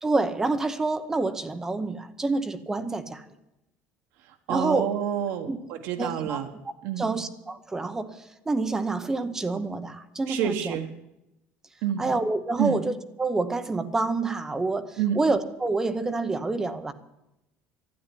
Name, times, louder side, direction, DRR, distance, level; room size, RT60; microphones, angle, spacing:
voice 1, 0.0-3.2 4.5-4.9 5.5-5.6 6.0-6.4 7.0-10.8 12.0-16.9, right 3 dB, 10° right, 10 dB, 0.8 m, -28 dB
voice 2, 4.3-6.5 6.8-7.2 10.3-10.9 11.8-12.1 12.6-12.8 15.0-15.2, right 9 dB, 70° right, 5 dB, 1.3 m, -28 dB
12.5 x 9.9 x 9.9 m, 0.90 s
cardioid pair, 175°, 5 cm